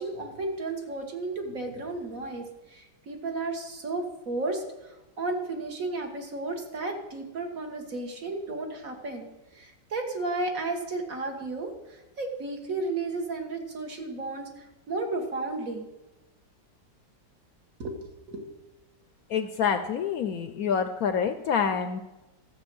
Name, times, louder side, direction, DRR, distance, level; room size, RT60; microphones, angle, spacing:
voice 1, 0.0-15.9 17.8-18.5, right 2 dB, 50° right, 3 dB, 1.8 m, -33 dB
voice 2, 19.3-22.0, left 7 dB, 65° left, 9 dB, 1.0 m, -27 dB
13.0 x 7.6 x 6.2 m, 1.0 s
omnidirectional pair, 1.9 m